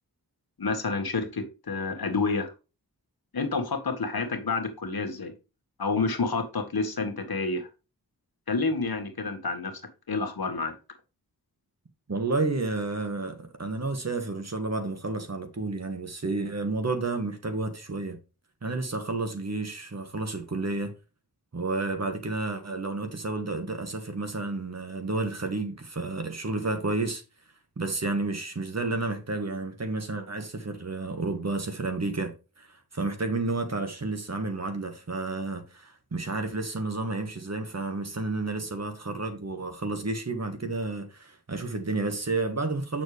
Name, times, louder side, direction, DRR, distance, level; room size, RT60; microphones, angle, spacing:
voice 1, 0.6-2.5 3.3-5.3 5.8-7.7 8.5-9.7 10.1-10.8, left 4 dB, 70° left, 1.8 m, -29 dB
voice 2, 12.1-18.2 18.6-21.0 21.5-27.2 27.8-32.7 32.9-43.0, right 3 dB, 45° right, 1.7 m, -31 dB
7.0 x 6.0 x 3.3 m
wide cardioid pair, 70°, 38 cm